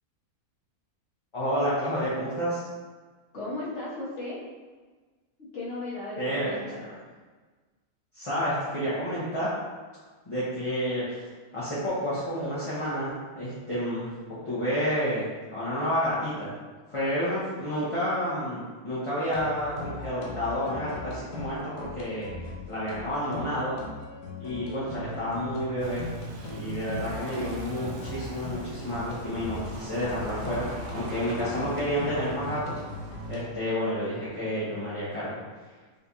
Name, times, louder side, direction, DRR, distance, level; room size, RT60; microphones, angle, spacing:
voice 1, 1.3-2.6 6.2-6.5 8.1-9.5 10.2-11.2 11.5-14.1 14.4-16.5 16.9-22.3 22.7-23.8 24.4-26.0 26.5-30.6 30.9-32.8 33.3-35.3, equal, 25° left, -11 dB, 0.9 m, -30 dB
voice 2, 3.3-4.4 5.5-6.8, left 2 dB, 55° left, -9 dB, 1.6 m, -35 dB
sound 1, 19.2-33.5, left 2 dB, 85° left, 1.2 m, -39 dB
sound 2, 25.8-33.4, right 2 dB, 85° right, 0.4 m, -40 dB
5.2 x 3.3 x 2.7 m, 1.4 s
omnidirectional pair, 1.5 m